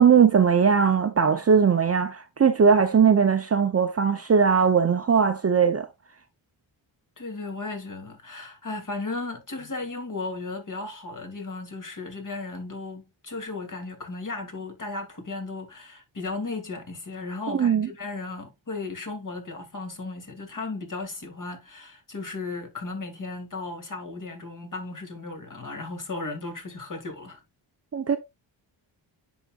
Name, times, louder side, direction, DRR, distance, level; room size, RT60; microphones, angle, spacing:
voice 1, 0.0-5.9 17.5-17.9 27.9-28.2, right 6 dB, 30° right, 0.6 m, -19 dB
voice 2, 7.2-27.4, left 3 dB, 40° left, 2.5 m, -35 dB
10.0 x 4.0 x 2.4 m
cardioid pair, 75°, 47 cm